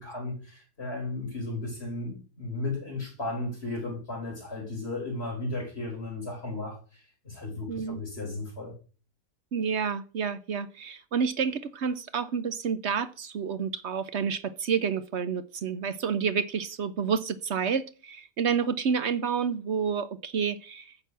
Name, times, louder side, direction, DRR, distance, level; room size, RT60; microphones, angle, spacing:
voice 1, 0.0-8.7, left 2 dB, 35° left, 4.8 m, -35 dB
voice 2, 7.7-8.0 9.5-20.9, right 6 dB, 55° right, 0.8 m, -29 dB
9.3 x 6.1 x 8.2 m
omnidirectional pair, 1.8 m